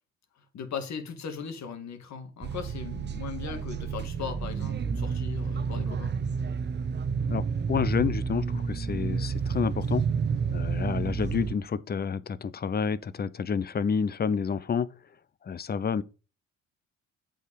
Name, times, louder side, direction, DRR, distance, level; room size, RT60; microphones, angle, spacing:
voice 1, 0.5-6.1, left 6 dB, 65° left, 1.9 m, -38 dB
sound 1, 2.4-11.5, right 6 dB, 35° right, 0.7 m, -30 dB
voice 2, 7.3-10.0 10.5-14.9 15.4-16.0, left 6 dB, 30° left, 0.7 m, -29 dB
8.1 x 4.7 x 5.0 m
cardioid pair, 90°, 30 cm